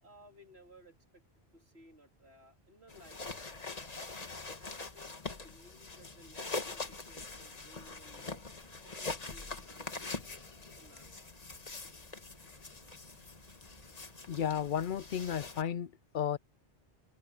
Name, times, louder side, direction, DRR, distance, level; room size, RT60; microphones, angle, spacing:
voice 1, 0.0-1.2 1.5-3.5 4.6-10.2 10.8-11.3, equal, 85° right, 3.6 m, -60 dB
sound 1, 2.0-15.5, right 1 dB, 40° right, 5.9 m, -68 dB
sound 2, 2.9-15.6, left 3 dB, 40° left, 1.5 m, -43 dB
sound 3, 6.7-11.9, equal, 5° left, 6.1 m, -74 dB
voice 2, 14.3-16.4, left 9 dB, 60° left, 0.6 m, -33 dB
omnidirectional pair, 1.1 m